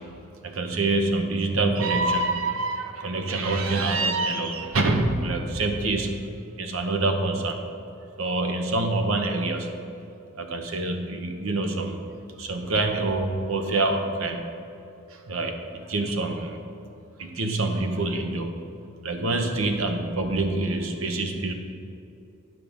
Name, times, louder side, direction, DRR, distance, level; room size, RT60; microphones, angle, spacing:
voice 1, 0.4-6.3 6.6-7.6 8.2-9.7 10.3-12.0 12.4-14.6 15.1-16.6 17.2-18.7 19.0-21.5, right 2 dB, 90° right, 5 dB, 0.9 m, -26 dB
9.4 x 6.1 x 5.1 m, 2.7 s
head